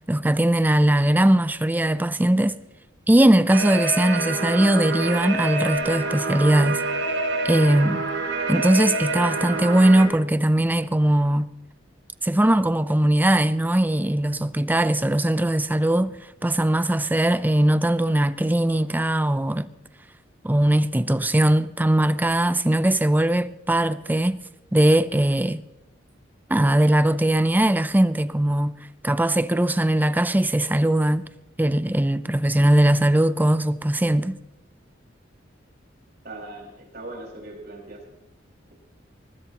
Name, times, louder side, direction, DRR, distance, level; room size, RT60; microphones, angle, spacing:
voice 1, 0.1-2.6 3.1-6.8 7.4-8.0 8.5-11.5 12.2-16.1 16.4-19.7 20.4-24.4 24.7-25.6 26.5-28.8 29.0-31.3 31.6-34.4, right 1 dB, 10° right, 0.5 m, -20 dB
sound 1, 3.5-10.0, right 2 dB, 85° right, 7.7 m, -27 dB
voice 2, 36.2-38.0, right 2 dB, 55° right, 5.1 m, -39 dB
20.5 x 20.5 x 2.9 m
head